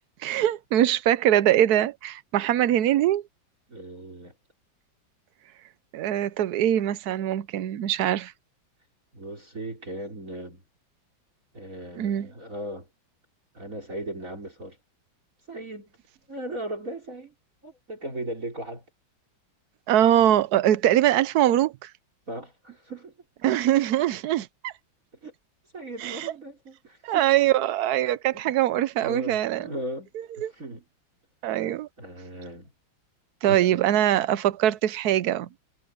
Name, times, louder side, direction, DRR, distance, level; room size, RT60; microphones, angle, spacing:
voice 1, 0.2-3.2 5.9-8.3 12.0-12.3 19.9-21.9 23.4-24.7 26.0-26.3 27.0-29.7 30.4-30.5 31.4-31.9 33.4-35.5, right 12 dB, 65° right, 1.0 m, -22 dB
voice 2, 3.7-4.3 9.1-10.6 11.5-12.9 13.5-14.8 15.5-16.0 16.3-17.3 17.6-18.8 22.3-23.1 25.2-25.3 25.7-27.2 28.3-28.5 29.0-30.8 32.0-32.7 33.5-34.0, right 1 dB, 40° right, 5.1 m, -37 dB
omnidirectional pair, 2.2 m